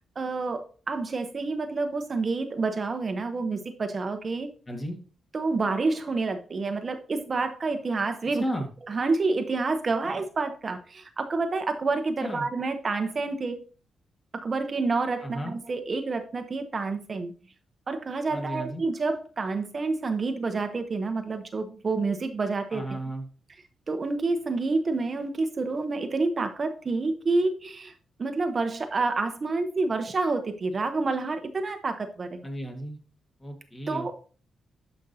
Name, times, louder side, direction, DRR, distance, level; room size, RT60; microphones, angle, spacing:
voice 1, 0.2-4.5 5.3-8.4 8.9-13.6 14.3-17.3 17.9-23.0 23.9-27.9 28.2-32.4 33.9-34.1, right 3 dB, 40° right, 8 dB, 0.8 m, -28 dB
voice 2, 4.7-5.0 8.3-8.7 12.2-12.5 15.2-15.6 18.3-18.8 22.7-23.3 32.4-33.0 33.4-34.1, equal, 25° left, 3 dB, 1.7 m, -34 dB
11.5 x 5.3 x 2.7 m, 0.39 s
cardioid pair, 100°, 0 cm